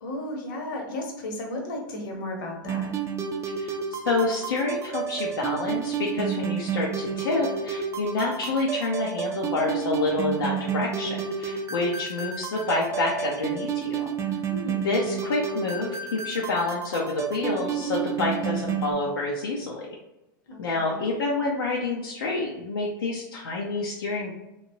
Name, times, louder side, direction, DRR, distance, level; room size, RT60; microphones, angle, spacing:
voice 1, 0.0-2.9 14.5-14.9 20.5-21.1, left 1 dB, 65° left, 2 dB, 1.0 m, -34 dB
sound 1, 2.6-18.9, right 7 dB, 25° right, 0.5 m, -31 dB
voice 2, 3.6-14.1 14.8-19.9 20.6-24.3, left 3 dB, 85° left, -3 dB, 0.6 m, -28 dB
3.0 x 2.8 x 2.7 m, 0.96 s
hypercardioid pair, 100°, 12 cm